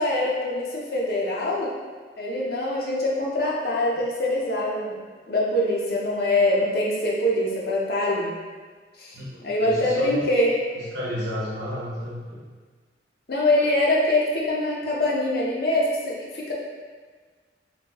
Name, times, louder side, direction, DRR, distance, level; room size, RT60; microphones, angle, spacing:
voice 1, 0.0-1.7 2.2-5.0 5.3-8.3 9.0-9.2 9.4-10.5 13.3-16.5, left 1 dB, 55° left, -4 dB, 0.6 m, -24 dB
voice 2, 9.1-10.2 10.7-12.5, equal, 65° right, -7 dB, 0.9 m, -32 dB
3.0 x 2.6 x 2.8 m, 1.5 s
head